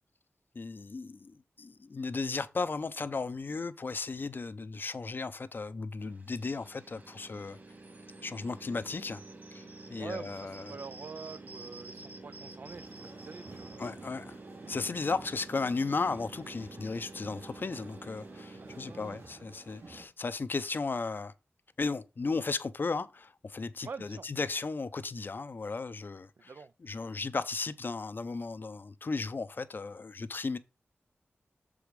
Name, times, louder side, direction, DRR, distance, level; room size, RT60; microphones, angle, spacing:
voice 1, 0.5-7.6 8.2-9.2 9.5-9.6 9.9-10.8 13.8-14.4 14.7-21.3 21.8-26.5 26.8-30.6, left 4 dB, 50° left, 0.6 m, -35 dB
sound 1, 6.0-19.2, right 2 dB, 45° right, 1.8 m, -49 dB
voice 2, 10.0-13.9 18.6-19.5 23.8-24.3 26.5-26.7, right 5 dB, 65° right, 0.4 m, -46 dB
sound 2, 12.7-20.1, right 3 dB, 85° right, 2.5 m, -52 dB
7.0 x 4.9 x 5.1 m
wide cardioid pair, 90°, 4 cm